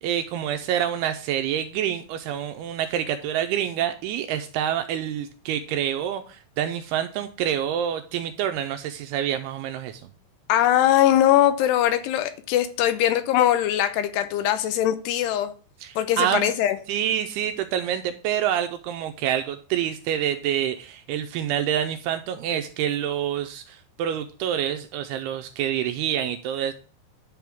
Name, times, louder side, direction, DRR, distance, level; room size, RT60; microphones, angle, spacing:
voice 1, 0.0-10.0 15.8-16.5 16.9-26.7, right 10 dB, 85° right, 2.3 m, -27 dB
voice 2, 10.5-15.5 16.0-16.8, left 12 dB, 85° left, 2.7 m, -21 dB
10.5 x 3.5 x 5.9 m
omnidirectional pair, 4.9 m